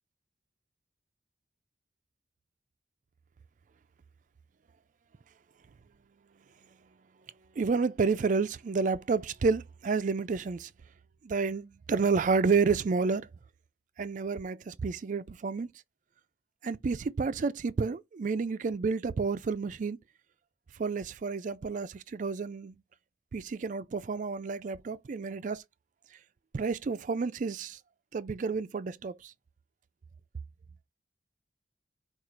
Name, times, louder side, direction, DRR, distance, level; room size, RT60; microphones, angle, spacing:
voice 1, 7.6-10.7 11.2-13.3 14.0-15.7 16.6-20.0 20.8-22.8 23.3-25.6 26.5-27.8 28.1-29.3, right 4 dB, 45° right, 0.4 m, -30 dB
4.9 x 2.4 x 4.4 m
head